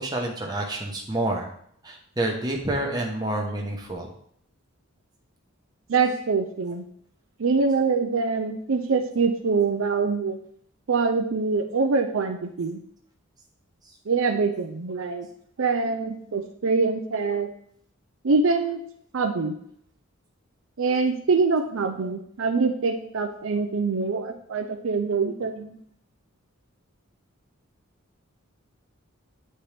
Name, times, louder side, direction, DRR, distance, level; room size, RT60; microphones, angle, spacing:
voice 1, 0.0-1.5 1.8-4.1, right 1 dB, 20° right, 0 dB, 1.0 m, -28 dB
voice 2, 5.9-6.8 7.4-10.4 10.9-12.8 14.1-15.3 15.6-17.5 18.2-18.8 19.1-19.5 20.8-25.8, right 4 dB, 70° right, 5 dB, 0.5 m, -24 dB
8.8 x 4.3 x 3.4 m, 0.66 s
head